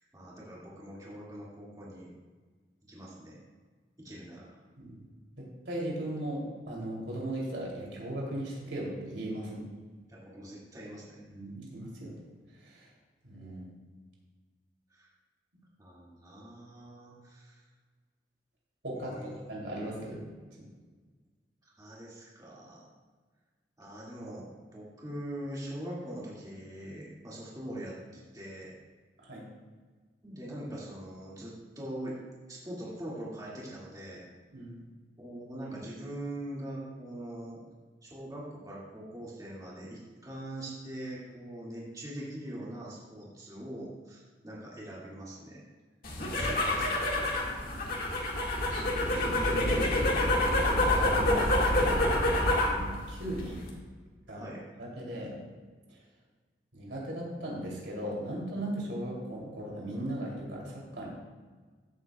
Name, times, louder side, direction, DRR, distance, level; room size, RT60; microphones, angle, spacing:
voice 1, 0.1-2.1 2.9-3.4 4.0-4.5 10.1-11.2 14.9-15.1 15.8-17.6 18.9-19.5 21.6-22.9 23.8-28.7 30.2-32.2 32.5-34.2 35.2-37.6 38.0-45.6 46.2-47.3 54.4-54.6, right 1 dB, 20° right, -6 dB, 2.1 m, -42 dB
voice 2, 5.6-9.7 11.3-12.1 13.2-13.6 18.8-19.1 19.5-20.2 29.2-29.4 34.5-34.7 48.6-49.9 50.6-52.2 52.6-53.6 54.3-54.5 54.8-55.4 56.7-61.1, right 1 dB, 85° right, -4 dB, 2.9 m, -37 dB
sound 1, 46.0-52.8 53.1-53.7, left 1 dB, 55° left, 1.8 m, -27 dB
14.5 x 7.7 x 2.3 m, 1.4 s
head